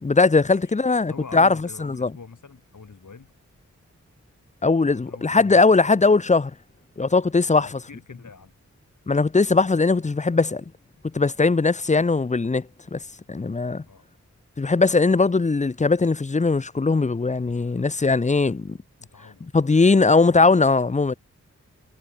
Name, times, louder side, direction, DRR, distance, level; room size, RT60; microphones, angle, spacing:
voice 1, 0.0-2.1 4.6-6.5 7.0-7.7 9.1-10.6 11.1-12.6 12.9-13.0 13.3-13.8 14.6-18.8 19.5-21.1, left 3 dB, 25° left, 0.6 m, -19 dB
voice 2, 1.0-3.3 4.9-5.7 7.6-8.5 13.9-14.0 19.0-19.6, left 5 dB, 80° left, 7.2 m, -44 dB
wide cardioid pair, 80°, 30 cm